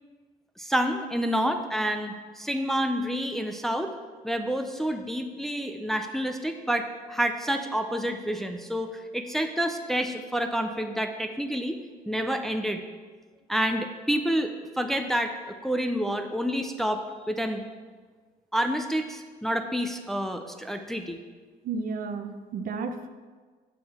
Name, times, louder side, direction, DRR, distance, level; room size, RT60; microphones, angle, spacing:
voice 1, 0.6-3.9 4.2-11.8 12.1-12.8 13.5-17.6 18.5-21.2, equal, ahead, 5 dB, 0.5 m, -28 dB
voice 2, 21.6-23.1, right 4 dB, 55° right, 8 dB, 0.7 m, -32 dB
8.7 x 6.6 x 4.3 m, 1.5 s
cardioid pair, 110°, 17 cm